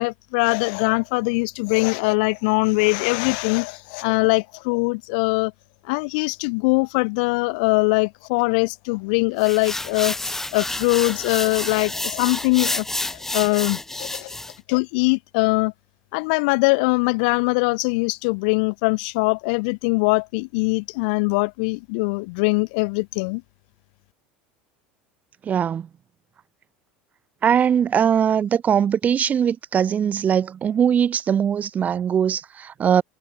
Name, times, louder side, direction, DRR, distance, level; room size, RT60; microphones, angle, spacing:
voice 1, 0.0-5.5 5.9-12.9 13.3-14.3 14.7-15.7 16.1-23.4, left 30 dB, 75° left, 2.5 m, -22 dB
sound 1, 9.4-14.6, left 2 dB, 10° left, 2.2 m, -29 dB
voice 2, 25.4-25.9 27.4-33.0, right 8 dB, 30° right, 4.5 m, -21 dB
supercardioid pair, 120°, 5 cm